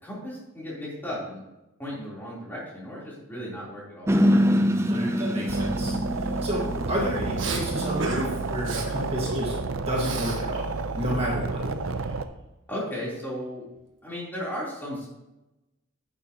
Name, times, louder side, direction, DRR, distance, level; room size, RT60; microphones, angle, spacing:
voice 1, 0.0-1.4 1.8-4.1 12.7-13.7 14.0-15.1, equal, 10° left, -7 dB, 3.5 m, -35 dB
sound 1, 4.1-9.1, equal, 15° right, 0.5 m, -25 dB
voice 2, 4.9-11.6, equal, 30° right, -3 dB, 1.8 m, -31 dB
sound 2, 5.5-12.2, right 3 dB, 85° right, 0.6 m, -31 dB
Respiratory sounds, 7.4-7.6 8.0-8.3 8.6-8.9 9.3-10.4 10.7-12.1, right 2 dB, 65° right, 1.5 m, -34 dB
10.5 x 9.0 x 3.0 m, 0.96 s
head